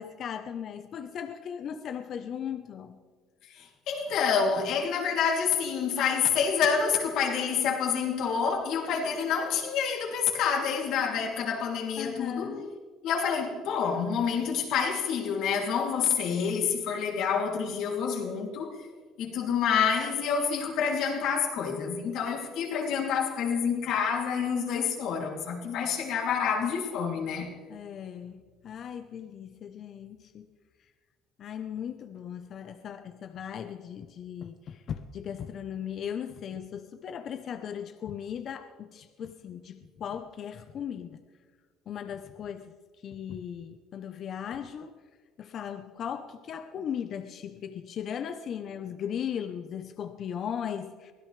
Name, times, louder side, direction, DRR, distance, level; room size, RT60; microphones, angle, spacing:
voice 1, 0.0-3.0 12.0-12.7 27.7-30.5 31.4-41.2 41.9-42.8 43.0-44.9 45.4-51.1, left 8 dB, 55° left, 0.9 m, -37 dB
voice 2, 3.5-12.6 13.0-18.7 19.2-27.5, left 6 dB, 70° left, 3.0 m, -28 dB
24.0 x 16.5 x 3.4 m
supercardioid pair, 90°, 0 cm